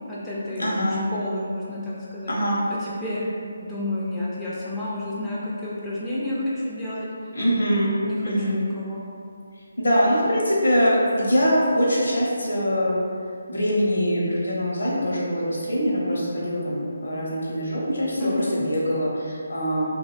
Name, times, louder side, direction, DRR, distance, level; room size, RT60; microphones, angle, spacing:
voice 1, 0.1-0.8 1.1-2.3 2.7-3.3 3.6-7.1 8.0-9.0 18.2-18.6, left 1 dB, 5° left, -10 dB, 0.3 m, -30 dB
voice 2, 0.6-1.0 2.3-2.7 7.3-7.9 8.2-8.6 9.8-13.0 13.5-19.9, equal, 70° left, -5 dB, 0.6 m, -23 dB
2.5 x 2.1 x 2.3 m, 2.3 s
figure-of-eight pair, 150°, 0 cm